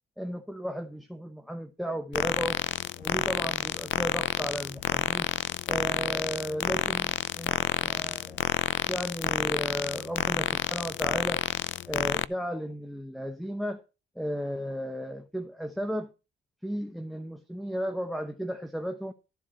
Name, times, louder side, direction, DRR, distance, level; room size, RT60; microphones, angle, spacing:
voice 1, 0.2-2.6 3.0-5.3 5.7-8.4 8.9-11.4 11.9-13.8 14.2-16.1 16.6-19.1, equal, ahead, 1.0 m, -34 dB
sound 1, 2.1-12.3, left 13 dB, 75° left, 0.5 m, -29 dB
13.5 x 4.6 x 7.5 m
cardioid pair, 90°, 20 cm